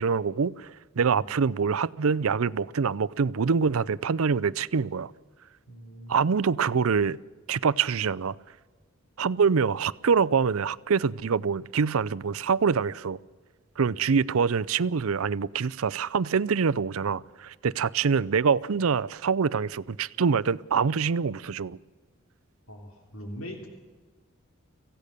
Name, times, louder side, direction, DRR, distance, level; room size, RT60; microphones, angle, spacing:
voice 1, 0.0-5.1 6.1-7.2 7.5-8.4 9.2-13.2 13.8-21.8, right 5 dB, 75° right, 19 dB, 0.5 m, -25 dB
voice 2, 1.0-1.4 5.7-6.1 13.8-14.0 22.7-23.7, equal, 70° left, 3 dB, 3.2 m, -42 dB
25.5 x 16.0 x 6.7 m, 1.4 s
head